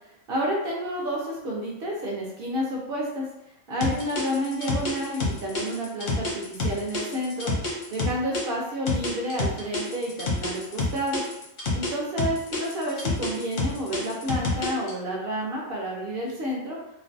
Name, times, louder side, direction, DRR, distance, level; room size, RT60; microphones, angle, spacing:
voice 1, 0.3-3.2 3.7-7.5 7.9-11.3 11.7-16.8, equal, 60° right, -2 dB, 0.6 m, -30 dB
sound 1, 3.8-8.4 8.9-11.9 12.2-14.9, left 2 dB, 55° left, 0.6 m, -27 dB
2.5 x 2.1 x 2.5 m, 0.83 s
omnidirectional pair, 1.5 m